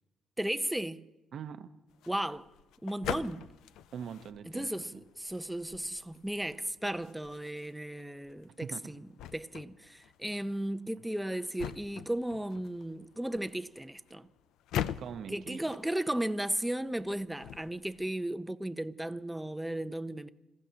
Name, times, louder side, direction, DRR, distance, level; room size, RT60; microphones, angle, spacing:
voice 1, 0.4-1.0 2.1-2.5 2.8-3.5 4.5-14.3 15.3-20.3, right 1 dB, 5° right, 0.6 m, -35 dB
voice 2, 1.3-1.7 3.9-4.8 8.6-8.9 15.0-15.6, right 7 dB, 65° right, 0.8 m, -42 dB
sound 1, 1.9-18.1, left 11 dB, 85° left, 0.4 m, -44 dB
27.5 x 15.5 x 2.9 m
cardioid pair, 90°, 0 cm